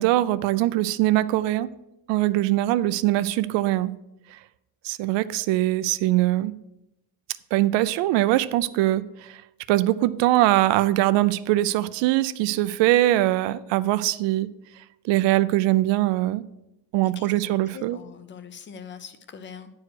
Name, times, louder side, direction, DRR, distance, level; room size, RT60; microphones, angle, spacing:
voice 1, 0.0-1.7 2.1-3.9 4.3-4.4 4.8-6.5 7.5-9.4 9.7-14.5 15.0-16.4 16.9-18.0, right 16 dB, 90° right, 0.6 m, -22 dB
voice 2, 17.7-19.7, left 7 dB, 30° left, 0.5 m, -42 dB
9.6 x 4.8 x 6.2 m
cardioid pair, 170°, 42 cm